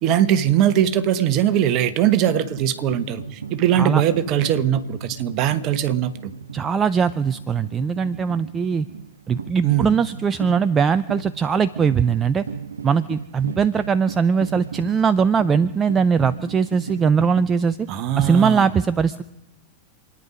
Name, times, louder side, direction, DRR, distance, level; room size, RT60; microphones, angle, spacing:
voice 1, 0.0-6.3 9.6-10.0 17.9-18.7, right 10 dB, 40° right, 1.2 m, -21 dB
sound 1, 2.4-17.5, right 6 dB, 70° right, 0.7 m, -36 dB
voice 2, 6.5-8.9 9.3-12.4 12.8-17.8 18.2-19.2, right 6 dB, 20° right, 0.5 m, -20 dB
27.5 x 9.9 x 5.2 m
figure-of-eight pair, 90°, 0 cm